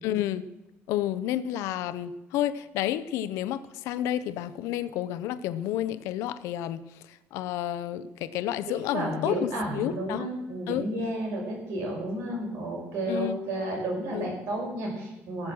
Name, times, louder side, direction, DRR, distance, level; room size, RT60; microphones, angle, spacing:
voice 1, 0.0-0.5 0.9-10.2 10.7-10.9 13.1-13.4 14.1-14.4, left 12 dB, 85° left, 14 dB, 0.8 m, -30 dB
voice 2, 8.7-15.5, right 1 dB, 70° right, 0 dB, 5.5 m, -32 dB
18.5 x 7.5 x 6.3 m, 1.0 s
cardioid pair, 165°, 5 cm